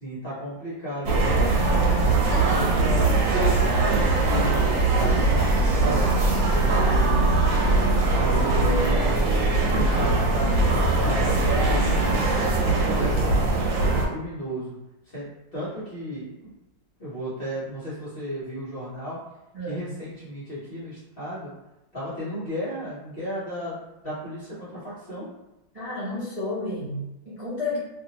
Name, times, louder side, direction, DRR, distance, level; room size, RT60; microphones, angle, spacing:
voice 1, 0.0-3.1 3.7-6.1 6.5-7.3 8.1-9.3 9.7-11.8 12.1-13.4 13.8-14.7 15.1-16.5 17.0-19.2 19.7-21.5 21.9-23.8 24.0-25.3, equal, 40° left, -10 dB, 0.9 m, -34 dB
sound 1, 1.1-14.1, right 2 dB, 80° right, 1.3 m, -21 dB
voice 2, 25.7-27.8, left 2 dB, 35° right, -11 dB, 0.6 m, -31 dB
2.8 x 2.7 x 2.9 m, 0.94 s
omnidirectional pair, 2.0 m